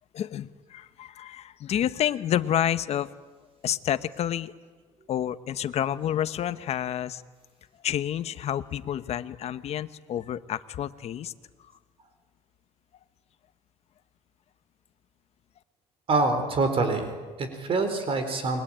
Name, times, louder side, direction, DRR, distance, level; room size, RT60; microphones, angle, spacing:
voice 1, 0.1-3.1 3.6-4.5 5.1-7.2 7.8-11.3, left 10 dB, 55° left, 13 dB, 1.1 m, -29 dB
voice 2, 16.1-18.6, right 3 dB, 45° right, 8 dB, 4.2 m, -26 dB
29.5 x 22.0 x 8.9 m, 1.4 s
cardioid pair, 115°, 13 cm